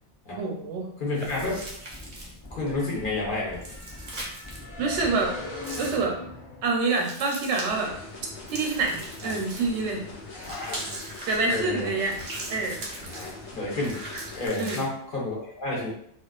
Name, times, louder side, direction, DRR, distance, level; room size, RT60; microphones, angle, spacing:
voice 1, 0.3-0.9 4.8-5.3 5.8-6.2 6.6-7.9 8.5-10.0 11.2-12.2 12.5-12.7 14.6-14.8, right 3 dB, 80° right, 0 dB, 0.9 m, -26 dB
voice 2, 1.0-1.6 2.5-3.6 9.2-9.3 10.3-10.9 11.5-12.0 13.1-13.3 13.5-14.0 14.3-15.9, left 2 dB, 50° left, -5 dB, 0.8 m, -30 dB
sound 1, 1.1-2.5 3.5-4.6 5.6-6.0 7.0-7.7 8.5-9.8 10.4-11.4 12.1-13.3 13.8-14.8, right 1 dB, 45° right, 0.6 m, -39 dB
sound 2, 1.2-6.7, left 2 dB, 25° left, 0.5 m, -40 dB
sound 3, 7.7-14.5, left 2 dB, 85° left, 1.1 m, -42 dB
2.3 x 2.3 x 2.3 m, 0.69 s
omnidirectional pair, 1.2 m